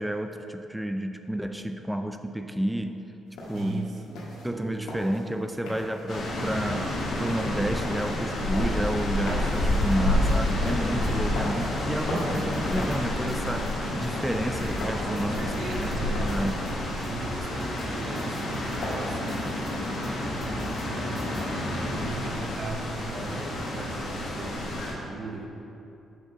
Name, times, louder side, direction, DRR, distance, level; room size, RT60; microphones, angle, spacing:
voice 1, 0.0-3.0 3.5-4.0 4.4-13.7 14.0-16.7, right 1 dB, 5° right, 7 dB, 0.3 m, -31 dB
sound 1, 3.3-19.2, left 1 dB, 85° left, 1.6 m, -40 dB
voice 2, 3.5-4.8 15.0-21.3 21.9-25.5, right 3 dB, 50° right, 2 dB, 0.8 m, -39 dB
sound 2, 6.1-24.9, left 1 dB, 65° left, 1.5 m, -29 dB
sound 3, 9.5-21.4, left 2 dB, 25° left, 0.9 m, -43 dB
6.4 x 6.2 x 4.0 m, 3.0 s
cardioid pair, 90°, 0 cm